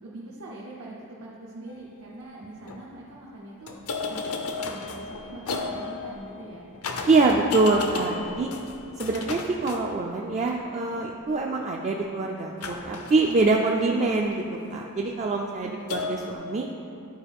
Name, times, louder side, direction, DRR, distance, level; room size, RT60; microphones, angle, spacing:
voice 1, 0.0-3.8 4.1-6.7 15.6-16.0, right 2 dB, 80° right, -5 dB, 1.0 m, -43 dB
sound 1, 1.7-1.8 2.4-2.8 3.7-10.6 12.6-14.6 15.9-16.3, left 4 dB, 70° left, 0.6 m, -34 dB
voice 2, 7.1-8.5 9.0-14.4 14.7-16.7, right 3 dB, 30° right, 0 dB, 0.3 m, -24 dB
11.0 x 4.6 x 3.5 m, 2.6 s
head